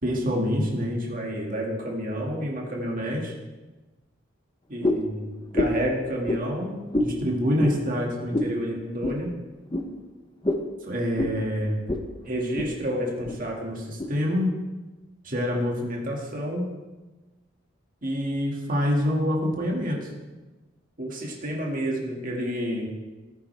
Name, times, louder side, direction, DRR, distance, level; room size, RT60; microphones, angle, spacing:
voice 1, 0.0-3.3 4.7-9.3 10.9-11.8 12.2-14.5 15.2-16.7 18.0-20.0 21.0-22.9, equal, 45° right, -1 dB, 2.1 m, -28 dB
sound 1, 4.8-5.1 5.5-5.9 6.2-6.4 6.9-7.1 7.6-7.8 8.3-8.5 9.0-9.2 9.7-9.9 10.4-10.7 11.2-11.4 11.9-12.0 12.4-12.7 13.2-13.4 14.0-14.1, left 1 dB, 25° left, 0.9 m, -25 dB
15.5 x 9.3 x 3.4 m, 1.2 s
head